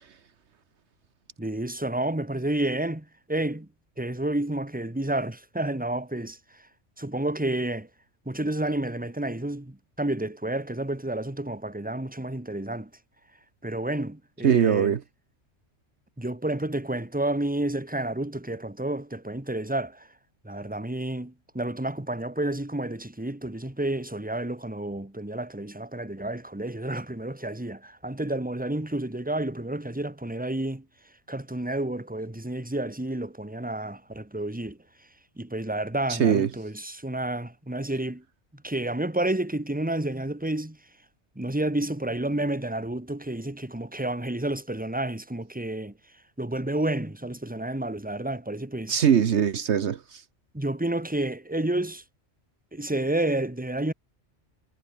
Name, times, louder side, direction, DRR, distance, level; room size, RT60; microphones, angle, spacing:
voice 1, 1.4-3.7 4.0-6.4 7.0-7.9 8.3-12.9 13.6-15.0 16.2-20.1 20.4-30.8 31.3-34.8 35.4-38.2 38.6-40.8 41.4-45.9 46.4-49.0 50.5-52.0 52.7-53.9, right 1 dB, 5° right, 1.9 m, -30 dB
voice 2, 14.4-15.0 36.1-36.5 48.9-50.2, right 8 dB, 70° right, 1.2 m, -21 dB
omnidirectional pair, 1.2 m